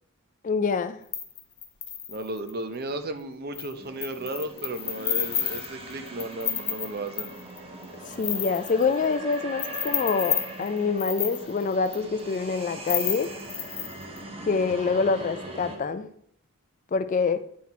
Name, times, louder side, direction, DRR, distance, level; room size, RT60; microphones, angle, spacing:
voice 1, 0.4-1.0 8.2-13.3 14.5-16.1 16.9-17.5, left 4 dB, 35° left, 0.3 m, -26 dB
sound 1, 1.1-2.5 3.5-3.7 4.0-7.6 7.8-9.3 9.6-11.9 12.9-14.2, left 10 dB, 55° left, 1.1 m, -30 dB
voice 2, 2.1-7.3, right 1 dB, 45° right, 0.7 m, -34 dB
sound 2, 3.8-15.8, right 1 dB, 25° right, 1.0 m, -41 dB
9.4 x 4.3 x 4.1 m
head